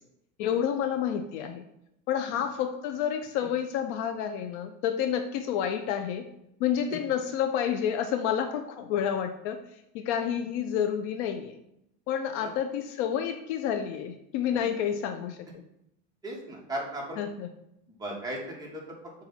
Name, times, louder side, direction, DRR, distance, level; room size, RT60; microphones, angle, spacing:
voice 1, 0.4-1.6 2.1-6.2 6.6-9.6 9.9-11.5 12.1-15.6 17.2-17.5, left 9 dB, 60° left, 6 dB, 0.6 m, -29 dB
voice 2, 16.2-17.2 17.9-18.8, right 1 dB, 10° right, -2 dB, 1.3 m, -37 dB
7.2 x 2.5 x 5.7 m, 0.80 s
supercardioid pair, 150°, 40 cm